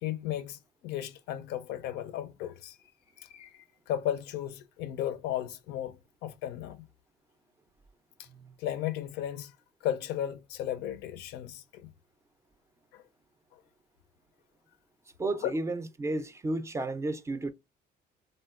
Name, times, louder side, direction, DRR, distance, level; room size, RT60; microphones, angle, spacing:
voice 1, 0.0-2.8 3.2-6.8 8.2-8.3 8.6-9.5 9.8-11.9 12.9-13.0 13.5-13.6 15.4-15.5, left 11 dB, 90° left, 0.4 m, -35 dB
voice 2, 15.2-17.5, right 2 dB, 15° right, 0.4 m, -33 dB
3.4 x 2.1 x 2.3 m
cardioid pair, 110°, 17 cm